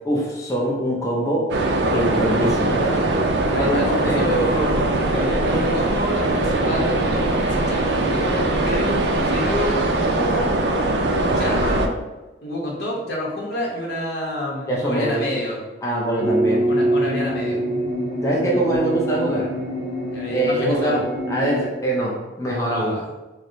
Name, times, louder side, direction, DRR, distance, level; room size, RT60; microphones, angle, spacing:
voice 1, 0.0-1.5 1.9-3.0 3.6-4.2 14.7-15.2 15.8-16.7 18.2-19.5 20.3-21.0 21.3-23.0, right 1 dB, 20° left, -4 dB, 0.6 m, -23 dB
sound 1, 1.5-11.9, right 2 dB, 75° right, 0.4 m, -21 dB
voice 2, 3.5-9.0 9.3-10.5 11.1-11.9 12.4-15.6 16.5-17.6 20.1-21.0 22.7-23.0, equal, 65° left, -3 dB, 1.0 m, -28 dB
sound 2, 16.2-21.7, right 1 dB, 35° right, 0.7 m, -24 dB
4.5 x 2.1 x 2.6 m, 1.1 s
head